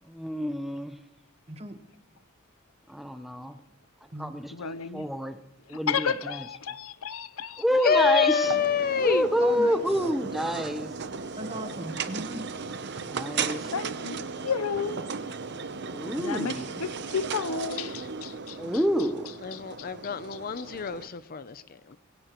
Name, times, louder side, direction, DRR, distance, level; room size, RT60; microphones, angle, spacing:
voice 1, 0.1-0.9 2.9-3.6 4.2-4.5 4.9-5.4 5.7-6.4 7.6-8.5 9.0-10.9 13.1-13.7 15.9-16.7 18.6-19.3, equal, ahead, 0.8 m, -28 dB
voice 2, 4.5-5.1 5.7-8.4 13.7-15.0 16.2-18.6 19.5-20.7, left 6 dB, 75° left, 0.7 m, -33 dB
voice 3, 7.8-9.3 19.4-22.0, left 6 dB, 40° left, 0.5 m, -27 dB
sound 1, 8.4-21.1, right 5 dB, 50° right, 0.8 m, -36 dB
voice 4, 9.4-10.1 11.4-12.5, right 1 dB, 30° right, 1.3 m, -37 dB
22.0 x 16.5 x 3.1 m
head